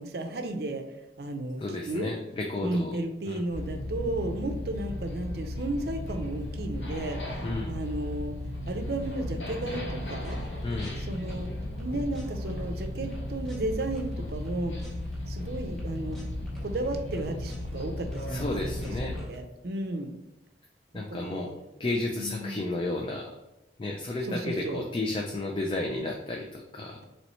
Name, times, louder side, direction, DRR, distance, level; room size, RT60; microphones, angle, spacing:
voice 1, 0.0-2.1 2.6-10.4 11.0-11.5 11.8-14.8 15.3-16.2 16.6-20.1 21.1-21.5 22.2-22.8 24.2-24.8, right 1 dB, 60° right, 5 dB, 0.5 m, -34 dB
voice 2, 1.6-2.9 3.3-3.4 7.4-7.7 10.6-11.0 18.3-19.2 20.9-21.5 21.8-23.3 23.8-27.0, left 2 dB, 30° left, 1 dB, 0.3 m, -32 dB
sound 1, 3.5-19.2, left 1 dB, 90° left, 0.9 m, -35 dB
sound 2, 10.1-11.8 12.1-12.5 12.8-14.5 14.8-17.8 18.1-19.4, equal, ahead, 0.8 m, -46 dB
4.2 x 3.1 x 3.0 m, 0.96 s
head